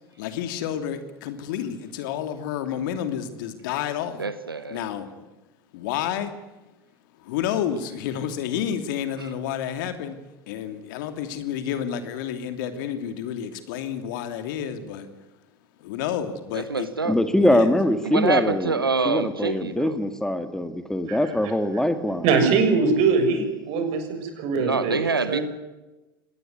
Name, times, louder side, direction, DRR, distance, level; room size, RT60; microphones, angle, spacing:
voice 1, 0.2-4.2 4.7-5.3 5.7-6.3 7.2-10.2 10.5-15.1 15.8-16.9 17.4-17.8, left 9 dB, 60° left, 2.8 m, -30 dB
voice 2, 4.2-4.8 9.2-9.3 16.5-17.2 18.0-20.0 24.6-25.4, right 4 dB, 90° right, 1.1 m, -26 dB
voice 3, 17.1-22.3, left 1 dB, 5° left, 2.1 m, -23 dB
voice 4, 22.2-24.9 25.3-25.4, right 4 dB, 55° right, 6.7 m, -22 dB
25.5 x 19.0 x 9.7 m
figure-of-eight pair, 75°, 12 cm